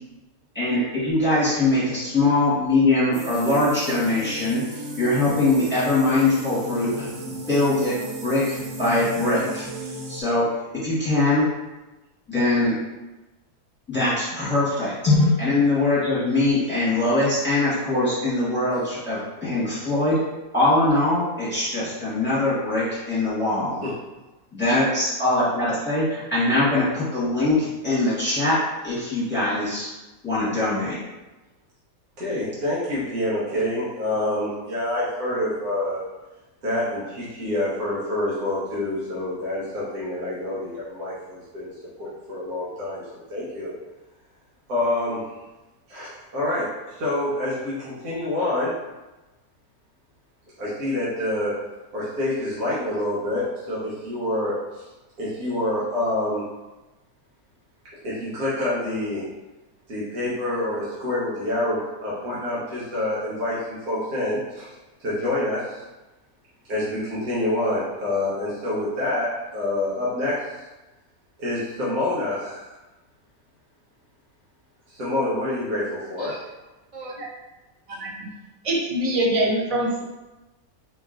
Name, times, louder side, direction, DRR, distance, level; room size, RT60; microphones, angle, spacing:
voice 1, 0.5-10.5 10.7-11.5 12.3-12.7 13.9-20.2 20.5-23.8 24.5-28.6 28.8-29.9 30.2-31.0, left 2 dB, 10° left, -10 dB, 1.2 m, -22 dB
sound 1, 3.1-10.2, right 2 dB, 65° right, 0.9 m, -35 dB
voice 2, 32.2-36.0 36.6-43.0 43.3-43.7 44.7-45.3 45.9-48.7 50.6-51.5 51.9-54.9 55.2-56.4 58.0-59.2 59.9-63.6 63.9-64.7 65.0-65.8 66.7-69.3 69.5-70.5 71.4-72.7 74.9-76.4, left 1 dB, 85° right, -9 dB, 1.5 m, -27 dB
voice 3, 78.6-80.0, right 1 dB, 50° right, -3 dB, 0.4 m, -24 dB
4.4 x 2.9 x 2.5 m, 1.1 s
omnidirectional pair, 1.5 m